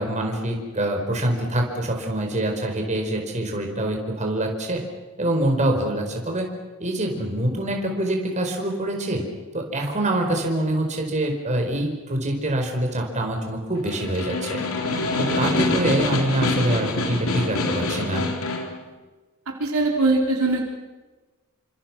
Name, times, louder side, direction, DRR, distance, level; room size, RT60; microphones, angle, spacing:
voice 1, 0.0-4.8 5.2-6.5 6.8-9.2 9.5-14.6 15.2-18.3, right 1 dB, 35° right, 2 dB, 4.7 m, -25 dB
Snare drum, 13.8-18.8, left 2 dB, 75° left, 3.8 m, -25 dB
voice 2, 19.6-20.7, right 2 dB, 85° right, 1 dB, 4.1 m, -21 dB
29.0 x 26.0 x 6.1 m, 1.3 s
head